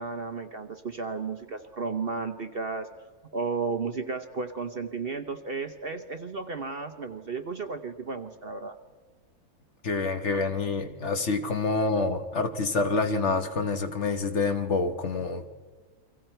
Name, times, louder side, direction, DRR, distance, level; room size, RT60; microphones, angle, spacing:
voice 1, 0.0-2.9 3.3-8.8, right 4 dB, 45° right, 1.0 m, -33 dB
voice 2, 9.8-15.5, left 3 dB, 50° left, 1.4 m, -27 dB
30.0 x 24.5 x 4.5 m
omnidirectional pair, 1.7 m